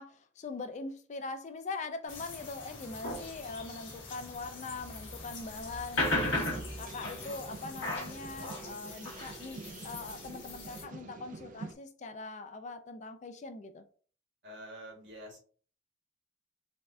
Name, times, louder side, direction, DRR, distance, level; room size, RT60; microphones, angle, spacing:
voice 1, 0.0-13.8, left 3 dB, 35° left, 0.3 m, -42 dB
sound 1, 2.0-8.5, left 1 dB, 80° left, 1.1 m, -52 dB
sound 2, 2.1-10.8, left 2 dB, 65° left, 1.3 m, -38 dB
sound 3, 6.3-11.8, right 3 dB, 40° right, 0.3 m, -47 dB
voice 2, 14.4-15.4, equal, 60° right, 1.3 m, -47 dB
4.1 x 2.3 x 2.5 m
head